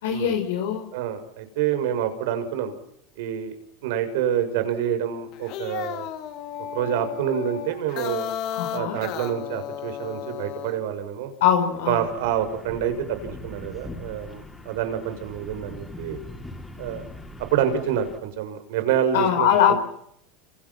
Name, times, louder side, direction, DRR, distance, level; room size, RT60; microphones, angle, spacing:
voice 1, 0.0-0.9 8.5-9.0 11.4-12.0 19.1-19.8, left 9 dB, 75° left, 5 dB, 5.1 m, -21 dB
voice 2, 0.9-2.7 3.2-3.5 3.8-6.1 6.7-8.3 8.7-11.3 11.9-16.2 16.8-17.0 17.5-19.8, right 9 dB, 75° right, 9 dB, 6.6 m, -27 dB
sound 1, 5.3-10.8, left 10 dB, 55° left, 3.4 m, -34 dB
sound 2, 11.8-18.2, left 2 dB, 10° left, 6.5 m, -41 dB
29.0 x 28.0 x 6.0 m, 0.73 s
supercardioid pair, 105°, 0 cm